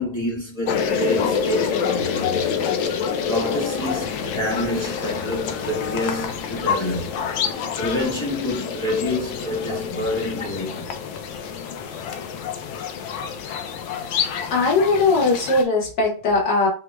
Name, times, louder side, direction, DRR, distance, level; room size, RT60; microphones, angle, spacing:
voice 1, 0.0-2.5 3.3-7.1 7.8-10.9, left 1 dB, 15° left, 1.2 m, -27 dB
sound 1, 0.7-15.6, left 7 dB, 90° left, 1.4 m, -27 dB
voice 2, 14.5-16.7, left 3 dB, 65° left, 2.0 m, -19 dB
6.3 x 3.0 x 2.2 m
omnidirectional pair, 2.1 m